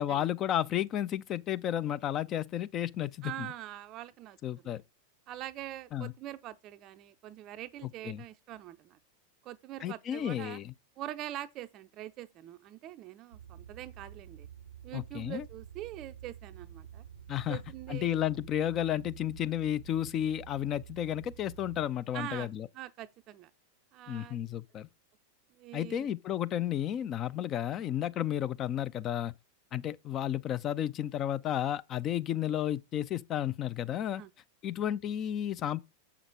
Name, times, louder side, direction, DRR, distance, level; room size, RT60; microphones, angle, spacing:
voice 1, 0.0-3.5 4.4-4.8 5.9-6.1 7.8-8.2 9.8-10.7 14.9-15.4 17.3-17.6 17.9-22.7 24.1-24.9 25.7-29.3 29.7-34.2 34.6-35.8, left 11 dB, 30° left, 0.5 m, -32 dB
voice 2, 3.2-4.4 4.6-4.8 5.3-9.0 9.4-10.6 11.0-14.5 14.8-17.0 17.5-18.2 22.1-22.5 22.7-23.5 23.9-24.4 25.5-26.1 34.2-34.3, right 13 dB, 35° right, 0.5 m, -43 dB
sound 1, 13.3-21.9, right 9 dB, 80° right, 0.7 m, -49 dB
7.2 x 6.0 x 4.6 m
figure-of-eight pair, 90°, 0 cm